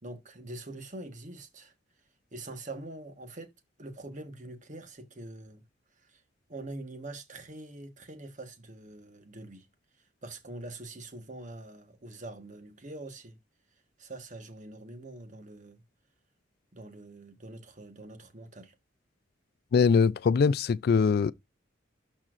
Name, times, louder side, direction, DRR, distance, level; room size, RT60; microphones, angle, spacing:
voice 1, 0.0-1.7 2.3-3.5 3.8-5.6 5.9-6.2 6.5-9.7 10.0-13.4 14.0-15.8 16.7-18.7, right 2 dB, 40° right, 1.3 m, -44 dB
voice 2, 19.7-21.3, left 5 dB, 50° left, 0.3 m, -22 dB
12.5 x 4.2 x 2.5 m
head